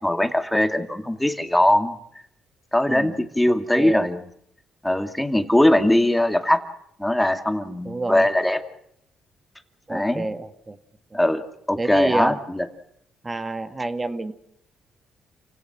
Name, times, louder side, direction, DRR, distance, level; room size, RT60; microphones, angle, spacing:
voice 1, 0.0-1.9 2.7-4.3 4.8-6.6 7.0-8.6 9.9-10.3 11.1-11.4 11.7-12.7, left 1 dB, 5° left, 7 dB, 2.3 m, -21 dB
voice 2, 3.5-4.1 7.8-8.2 9.9-10.7 11.8-12.4 13.2-14.3, right 2 dB, 25° right, 9 dB, 1.8 m, -28 dB
29.0 x 17.0 x 6.2 m, 0.72 s
cardioid pair, 90°, 0 cm